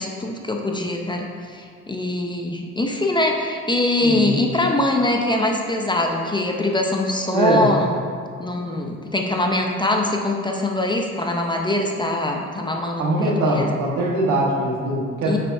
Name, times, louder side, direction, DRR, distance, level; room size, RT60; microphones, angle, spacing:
voice 1, 0.0-7.9 8.4-13.7 15.2-15.4, left 2 dB, 15° left, 1 dB, 0.6 m, -23 dB
voice 2, 4.0-4.4 7.3-7.7 13.0-15.4, right 1 dB, 80° right, -3 dB, 1.4 m, -22 dB
7.5 x 5.7 x 2.7 m, 2.1 s
cardioid pair, 90°, 30 cm